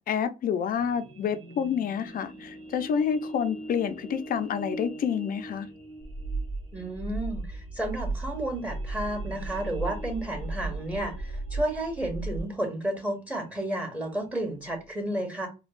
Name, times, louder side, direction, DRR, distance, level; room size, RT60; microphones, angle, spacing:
voice 1, 0.0-5.7, left 7 dB, 55° left, 0.5 m, -28 dB
sound 1, 0.8-14.9, right 1 dB, 30° right, 1.6 m, -44 dB
sound 2, 6.0-12.4, right 3 dB, 15° left, 0.8 m, -35 dB
voice 2, 6.7-15.5, right 1 dB, 10° right, 1.4 m, -32 dB
4.4 x 2.2 x 2.4 m
cardioid pair, 105°, 17 cm